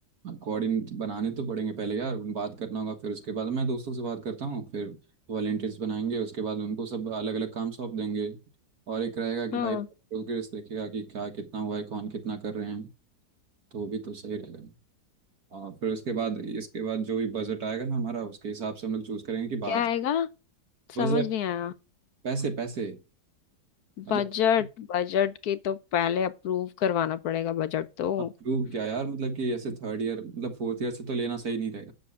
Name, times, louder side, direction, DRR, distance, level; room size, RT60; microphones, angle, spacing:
voice 1, 0.2-5.0 5.3-8.4 8.9-9.8 10.1-12.9 13.7-14.7 15.5-19.8 21.0-21.2 22.2-23.0 24.0-24.2 28.5-31.9, right 5 dB, 60° right, 1.9 m, -31 dB
voice 2, 9.5-9.9 19.7-20.3 21.0-21.7 24.0-28.3, left 9 dB, 70° left, 1.2 m, -27 dB
8.8 x 6.6 x 8.4 m
omnidirectional pair, 1.8 m